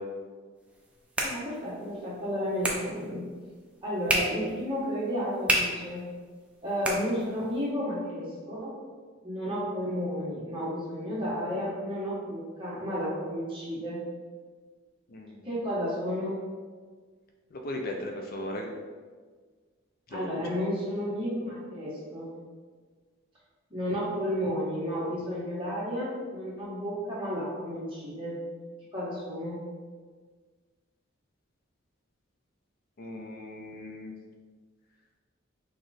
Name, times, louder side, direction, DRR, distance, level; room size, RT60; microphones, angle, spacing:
sound 1, 0.6-7.7, right 1 dB, 5° right, 0.5 m, -34 dB
voice 1, 1.2-3.2 3.8-6.0 6.6-8.8 9.2-14.0 15.4-16.4 20.1-22.3 23.7-28.4 28.9-29.6, equal, 25° right, -7 dB, 1.4 m, -32 dB
voice 2, 17.5-18.7 20.1-20.3 33.0-34.1, left 1 dB, 45° left, 2 dB, 0.4 m, -37 dB
4.9 x 2.4 x 4.1 m, 1.5 s
head